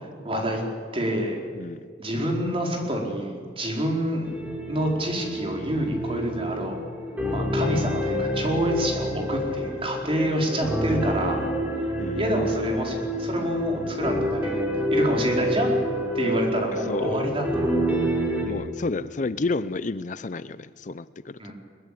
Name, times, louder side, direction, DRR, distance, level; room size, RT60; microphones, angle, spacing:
voice 1, 0.2-0.6 0.9-1.4 2.0-4.3 4.7-6.8 7.3-11.5 12.1-15.8 16.1-17.8 21.4-21.5, right 1 dB, 30° right, 1 dB, 4.5 m, -27 dB
sound 1, 4.2-18.5, equal, 10° right, 3.9 m, -28 dB
voice 2, 16.9-17.2 18.5-21.5, left 3 dB, 45° left, 15 dB, 0.6 m, -31 dB
22.5 x 21.0 x 8.5 m, 2.1 s
head